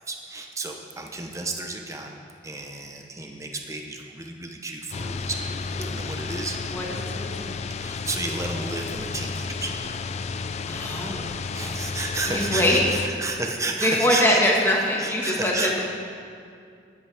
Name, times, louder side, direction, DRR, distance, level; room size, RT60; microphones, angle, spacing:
voice 1, 0.1-2.1 2.4-5.4 5.9-6.6 7.8-9.7 11.5-14.4 15.0-15.7, right 2 dB, 15° right, 2 dB, 0.9 m, -32 dB
sound 1, 4.9-13.1, left 4 dB, 35° left, 0.4 m, -32 dB
voice 2, 6.7-7.5 10.7-11.3 12.3-13.1 13.8-15.8, left 1 dB, 15° left, -3 dB, 1.7 m, -23 dB
14.0 x 11.0 x 3.5 m, 2.3 s
head